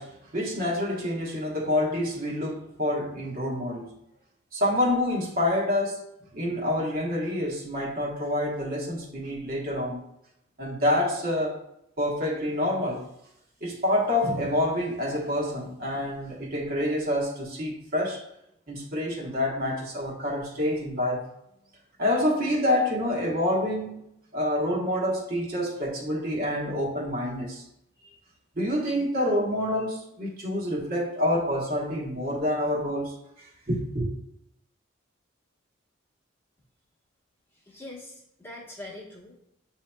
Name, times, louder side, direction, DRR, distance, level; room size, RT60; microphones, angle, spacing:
voice 1, 0.0-3.9 4.5-6.0 6.3-10.0 10.6-11.6 12.0-13.1 13.6-18.3 18.7-21.3 22.0-24.1 24.3-27.6 28.5-34.1, left 1 dB, 45° right, 1.1 m, -27 dB
voice 2, 37.5-39.4, left 1 dB, 10° left, 1.1 m, -43 dB
8.2 x 2.8 x 2.2 m
head